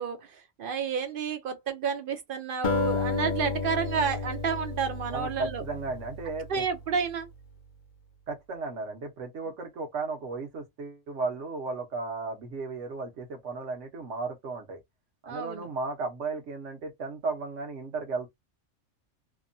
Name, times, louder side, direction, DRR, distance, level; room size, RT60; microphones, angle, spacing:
voice 1, 0.0-5.6 6.5-7.3 15.3-15.7, right 6 dB, 60° right, 0.7 m, -30 dB
Acoustic guitar, 2.6-7.1, left 4 dB, 50° left, 0.6 m, -32 dB
voice 2, 5.1-6.6 8.3-14.8 15.2-18.3, right 3 dB, 80° right, 1.2 m, -35 dB
2.9 x 2.2 x 2.6 m
omnidirectional pair, 1.2 m